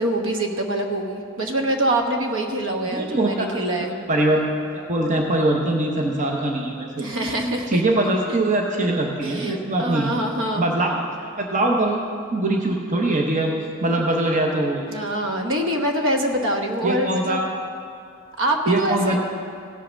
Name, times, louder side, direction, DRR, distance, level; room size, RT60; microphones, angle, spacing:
voice 1, 0.0-3.9 7.0-7.8 9.2-10.6 14.9-17.4 18.4-19.2, right 1 dB, 60° right, 3 dB, 1.1 m, -24 dB
voice 2, 2.9-4.4 4.7-7.1 7.4-10.1 10.6-12.0 12.3-13.5 13.8-14.8 16.8-17.5 18.7-19.2, right 2 dB, 35° right, 1 dB, 0.8 m, -22 dB
16.5 x 5.6 x 6.3 m, 2.4 s
head